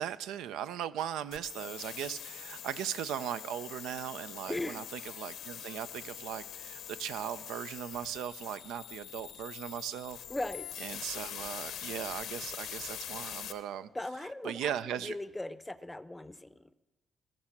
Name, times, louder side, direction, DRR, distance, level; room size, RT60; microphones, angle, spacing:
voice 1, 0.0-10.2 10.8-13.9 14.4-15.2, right 10 dB, 90° right, 13 dB, 0.4 m, -38 dB
sound 1, 1.3-13.5, left 10 dB, 80° left, 0.9 m, -44 dB
voice 2, 4.5-4.8 10.3-10.7 13.9-16.7, left 2 dB, 10° left, 15 dB, 0.6 m, -38 dB
19.0 x 6.6 x 7.3 m, 1.1 s
cardioid pair, 90°, 0 cm